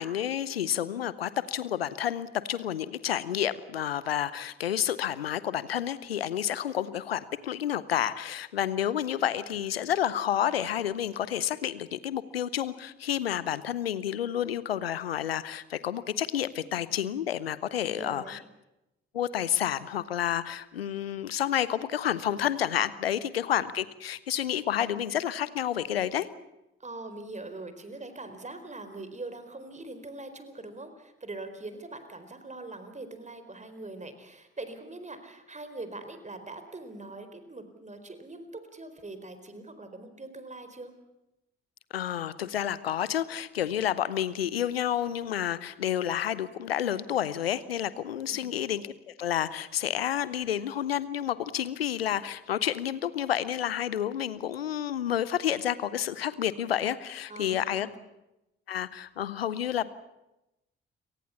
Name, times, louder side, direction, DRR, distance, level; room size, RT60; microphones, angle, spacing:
voice 1, 0.0-18.4 19.1-26.3 41.9-57.9 58.7-59.9, left 10 dB, 90° left, 17 dB, 0.8 m, -30 dB
voice 2, 17.8-18.4 23.2-23.4 26.8-40.9 48.2-48.5 57.3-58.0, right 2 dB, 25° right, 9 dB, 4.4 m, -42 dB
29.5 x 18.5 x 7.1 m, 0.91 s
figure-of-eight pair, 40°, 29 cm